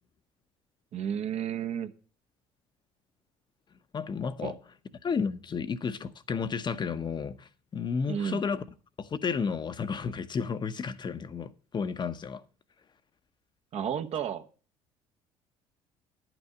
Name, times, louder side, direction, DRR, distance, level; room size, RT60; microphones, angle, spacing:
voice 1, 0.9-1.9 4.4-4.5 8.1-8.4 13.7-14.5, right 8 dB, 55° right, 1.0 m, -32 dB
voice 2, 3.9-4.6 5.0-8.6 9.0-12.4, left 5 dB, 35° left, 0.8 m, -32 dB
10.5 x 6.0 x 7.6 m
hypercardioid pair, 65°, 13 cm